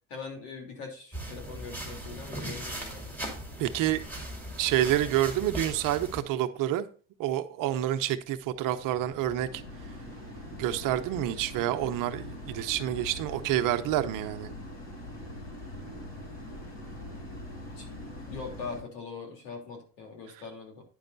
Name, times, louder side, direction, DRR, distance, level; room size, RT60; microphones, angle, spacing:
voice 1, 0.1-3.1 17.8-17.9 18.3-20.8, left 5 dB, 90° left, 3.3 m, -41 dB
sound 1, 1.1-6.2, right 1 dB, 5° left, 2.6 m, -39 dB
voice 2, 3.6-4.0 4.6-6.9 7.2-9.6 10.5-14.5, right 13 dB, 55° right, 0.9 m, -28 dB
sound 2, 7.6-18.8, left 1 dB, 45° left, 4.5 m, -43 dB
10.0 x 5.4 x 4.0 m
supercardioid pair, 115°, 38 cm